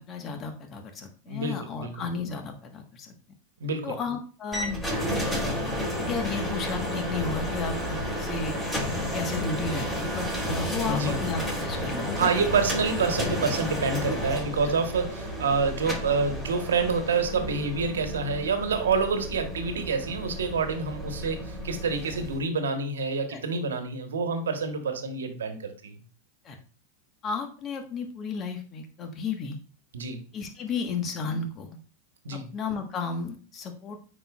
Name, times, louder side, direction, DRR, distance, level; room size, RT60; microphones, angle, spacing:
voice 1, 0.1-3.1 3.8-4.8 6.0-8.6 9.0-12.3 14.6-14.7 23.3-23.4 26.4-26.6 27.2-29.6 30.3-31.8 32.3-34.0, left 4 dB, 35° left, 5 dB, 1.3 m, -33 dB
voice 2, 1.3-1.9 3.6-3.9 10.8-11.2 12.2-25.9 29.9-30.2 32.2-32.5, right 4 dB, 85° right, 7 dB, 1.1 m, -27 dB
sound 1, 4.5-22.4, equal, 10° left, 3.2 m, -32 dB
9.0 x 4.5 x 2.4 m, 0.39 s
hypercardioid pair, 105°, 0 cm